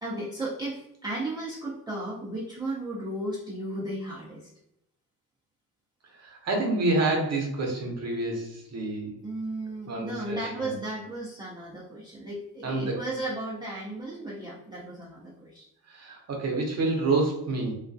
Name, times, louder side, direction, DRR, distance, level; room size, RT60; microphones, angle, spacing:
voice 1, 0.0-4.5 9.2-15.7, right 1 dB, 10° right, -7 dB, 0.5 m, -35 dB
voice 2, 6.1-9.1 9.9-10.7 12.6-13.0 15.9-17.8, right 2 dB, 45° right, 1 dB, 0.8 m, -28 dB
2.3 x 2.1 x 2.6 m, 0.80 s
cardioid pair, 100°, 37 cm